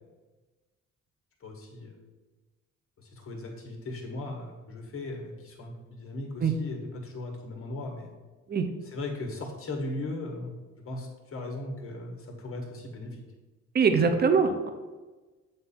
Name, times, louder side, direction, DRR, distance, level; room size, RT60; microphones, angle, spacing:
voice 1, 1.4-2.0 3.0-8.1 8.8-13.2, left 2 dB, 45° left, 2 dB, 1.7 m, -38 dB
voice 2, 13.7-14.7, right 5 dB, 35° right, 7 dB, 0.7 m, -22 dB
7.7 x 2.7 x 5.7 m, 1.2 s
cardioid pair, 90°, 30 cm